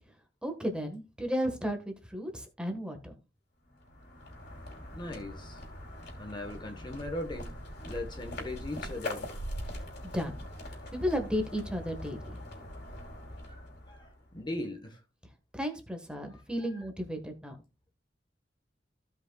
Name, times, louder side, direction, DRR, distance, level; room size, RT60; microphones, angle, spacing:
voice 1, 0.4-3.1 10.0-10.3 10.9-12.4 15.5-17.6, equal, 5° right, 1.3 m, -34 dB
sound 1, 3.7-14.4, left 1 dB, 65° left, 2.7 m, -42 dB
voice 2, 4.9-5.6 6.2-7.6 7.9-9.3 13.5-13.6 13.9-15.0 16.3-16.4, left 1 dB, 25° left, 1.1 m, -39 dB
15.5 x 5.3 x 2.3 m
head